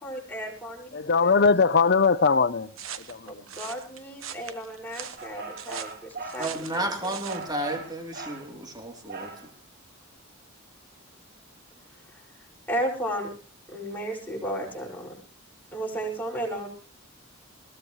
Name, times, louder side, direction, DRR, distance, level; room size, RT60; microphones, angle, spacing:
voice 1, 0.0-0.9 1.2-1.3 3.3-6.9 12.1-12.2 12.7-13.3 13.7-15.2 15.7-16.7, right 1 dB, 10° left, 5.9 m, -34 dB
voice 2, 0.9-2.7 3.1-3.4, left 5 dB, 50° left, 0.8 m, -21 dB
Heavy walking with dry leaves., 2.8-7.5, right 8 dB, 70° right, 1.2 m, -40 dB
sound 1, 5.2-6.5 7.2-8.5 9.1-9.5, right 3 dB, 50° right, 2.4 m, -39 dB
voice 3, 6.4-9.3, right 1 dB, 20° right, 3.3 m, -32 dB
20.5 x 17.0 x 3.2 m
head